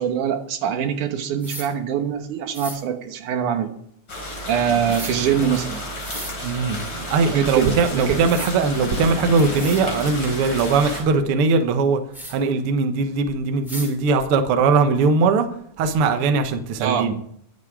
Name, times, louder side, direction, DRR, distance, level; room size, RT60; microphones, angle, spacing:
voice 1, 0.0-3.7 4.5-5.8 7.3-8.2 16.8-17.1, right 8 dB, 85° right, 2.7 m, -23 dB
sound 1, 1.4-1.7 2.5-2.8 4.9-5.1 6.0-6.3 7.8-7.9 8.3-8.5 9.2-9.3 9.5-9.8 12.1-12.3 13.6-13.9, equal, ahead, 4.4 m, -35 dB
sound 2, 4.1-11.0, equal, 35° left, 4.8 m, -32 dB
Bird, 4.5-5.9 8.7-11.3, left 7 dB, 75° left, 2.9 m, -38 dB
voice 2, 6.4-12.0 12.3-15.5 15.8-17.1, right 4 dB, 60° right, 1.7 m, -20 dB
22.5 x 7.6 x 4.8 m
omnidirectional pair, 3.5 m